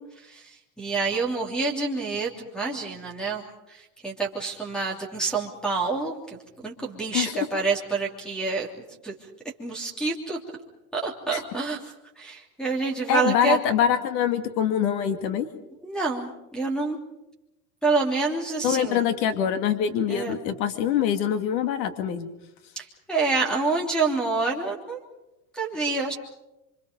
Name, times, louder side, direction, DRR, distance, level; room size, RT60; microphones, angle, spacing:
voice 1, 0.0-3.4 3.7-8.7 9.0-9.1 9.6-10.4 10.9-11.8 12.2-13.6 15.8-17.0 17.8-19.0 20.1-20.3 22.7-25.0 25.5-26.1, right 4 dB, ahead, 2 dB, 3.1 m, -27 dB
voice 2, 7.1-7.5 11.3-11.4 13.1-15.5 18.6-22.3, left 9 dB, 85° left, 9 dB, 2.6 m, -24 dB
27.0 x 25.5 x 5.3 m, 0.91 s
supercardioid pair, 155°, 50 cm